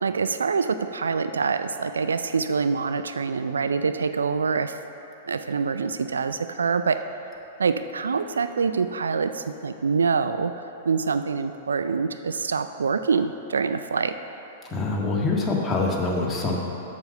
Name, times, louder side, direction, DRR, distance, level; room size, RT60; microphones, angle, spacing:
voice 1, 0.0-4.8 5.3-7.0 7.6-14.1, right 5 dB, 80° right, 10 dB, 0.3 m, -25 dB
voice 2, 14.7-16.6, left 3 dB, 15° left, -3 dB, 1.6 m, -25 dB
7.3 x 6.6 x 6.6 m, 2.9 s
figure-of-eight pair, 105°, 0 cm